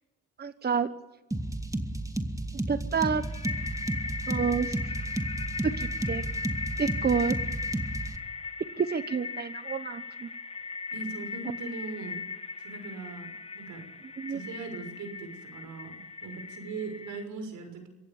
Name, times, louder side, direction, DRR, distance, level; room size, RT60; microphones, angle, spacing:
voice 1, 0.4-0.9 2.7-3.2 4.3-4.9 5.8-6.2 6.8-7.4 8.8-10.3 14.2-14.4, right 6 dB, 35° right, 11 dB, 1.2 m, -29 dB
sound 1, 1.3-8.2, right 1 dB, 10° right, 2.0 m, -33 dB
sound 2, 2.9-17.2, left 4 dB, 20° left, 1.8 m, -38 dB
voice 2, 10.9-12.2 12.6-13.8 14.3-17.9, right 3 dB, 80° right, 6 dB, 6.3 m, -40 dB
26.5 x 16.0 x 7.2 m, 1.0 s
cardioid pair, 90°, 30 cm